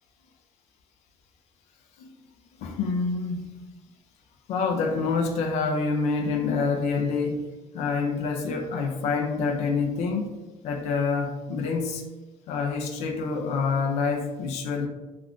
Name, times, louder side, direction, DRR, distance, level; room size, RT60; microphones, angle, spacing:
voice 1, 2.6-3.6 4.5-7.4 7.7-10.3 10.6-12.0 12.5-14.9, left 4 dB, 80° left, 4 dB, 0.4 m, -27 dB
2.5 x 2.3 x 3.4 m, 1.1 s
cardioid pair, 95°, 11 cm